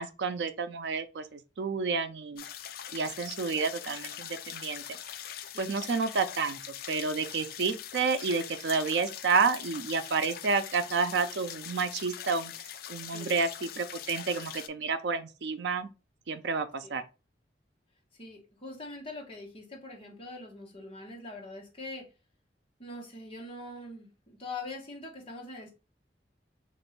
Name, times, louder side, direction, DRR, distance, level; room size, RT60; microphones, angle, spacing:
voice 1, 0.0-2.4 2.9-4.8 5.6-6.6 6.9-12.5 12.9-15.9 16.3-17.0, right 4 dB, 75° right, 0.5 m, -30 dB
sound 1, 2.4-14.7, left 10 dB, 55° left, 0.3 m, -42 dB
voice 2, 5.5-5.9 13.1-13.3 16.8-16.9 18.1-22.1 22.8-25.7, left 2 dB, 30° left, 1.2 m, -43 dB
3.0 x 2.6 x 4.3 m
head